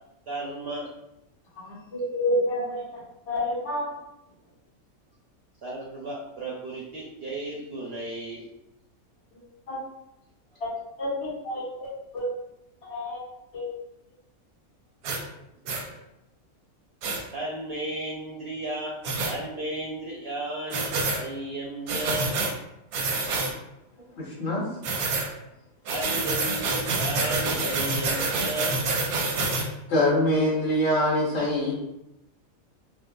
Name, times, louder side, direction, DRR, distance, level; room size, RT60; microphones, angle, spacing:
voice 1, 0.3-0.9 1.7-1.9 5.6-8.5 15.6-16.0 17.3-18.9 19.3-20.9 21.2-22.3 25.9-29.0, right 1 dB, 65° right, -4 dB, 0.6 m, -34 dB
voice 2, 1.6-3.0 3.3-3.9 9.7-9.8 10.6-10.7 11.0-11.9 12.1-12.3 12.9-13.2 13.5-13.6, left 1 dB, 80° left, -8 dB, 1.9 m, -29 dB
sound 1, 15.0-15.2 15.7-15.8 17.0-17.2 19.0-19.3 20.7-21.2 21.9-22.5 22.9-23.5 24.8-25.3 25.9-29.7, right 3 dB, 90° right, 1.1 m, -27 dB
voice 3, 24.2-24.7 29.9-31.7, left 1 dB, 40° left, -7 dB, 1.1 m, -23 dB
4.8 x 2.0 x 2.2 m, 0.88 s
omnidirectional pair, 1.5 m